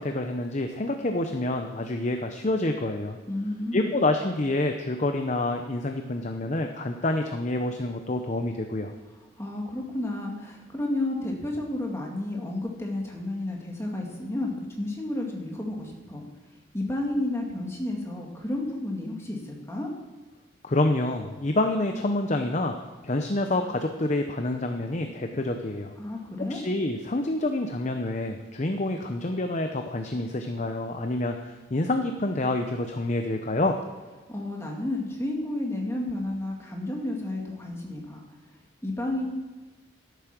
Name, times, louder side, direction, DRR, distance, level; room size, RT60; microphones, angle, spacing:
voice 1, 0.0-3.2 3.7-8.9 20.6-25.9 26.5-33.8, left 2 dB, 40° left, 5 dB, 0.8 m, -27 dB
voice 2, 3.3-4.0 9.4-16.2 16.7-19.9 26.0-26.6 34.3-38.2 38.8-39.3, left 1 dB, 15° left, 0 dB, 2.0 m, -31 dB
13.0 x 8.4 x 6.1 m, 1.3 s
head